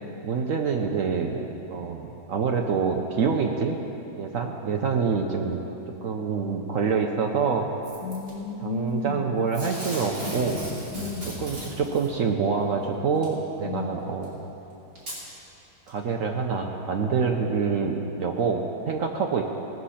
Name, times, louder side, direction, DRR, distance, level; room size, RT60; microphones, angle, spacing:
voice 1, 0.2-1.4 1.7-3.8 4.2-5.6 6.0-7.7 8.6-10.6 11.4-14.4 15.9-19.5, right 5 dB, 65° right, 2 dB, 0.8 m, -26 dB
Packing tape duct tape / Tearing, 7.8-8.3 9.5-12.1 13.2-13.3 14.2-14.3 15.0-15.2 15.9-16.0, equal, 50° right, 3.6 m, -36 dB
voice 2, 8.0-9.3 10.9-11.4 13.6-14.0, left 3 dB, 75° left, -1 dB, 2.3 m, -32 dB
18.5 x 6.7 x 5.7 m, 3.0 s
omnidirectional pair, 2.1 m